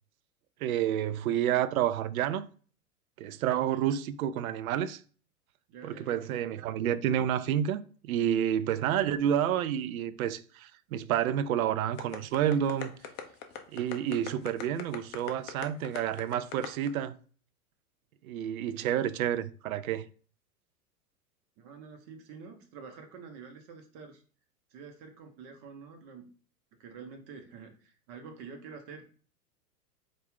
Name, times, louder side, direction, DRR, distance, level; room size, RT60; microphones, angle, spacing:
voice 1, 0.6-2.5 3.2-5.0 5.8-12.9 13.7-17.2 18.2-20.0, right 10 dB, 65° right, 0.5 m, -29 dB
voice 2, 5.7-6.3 21.6-24.2 24.7-26.3 26.8-29.1, right 5 dB, 40° right, 1.1 m, -47 dB
sound 1, 12.0-16.9, left 9 dB, 25° left, 0.4 m, -39 dB
4.1 x 2.6 x 3.7 m
hypercardioid pair, 105°, 46 cm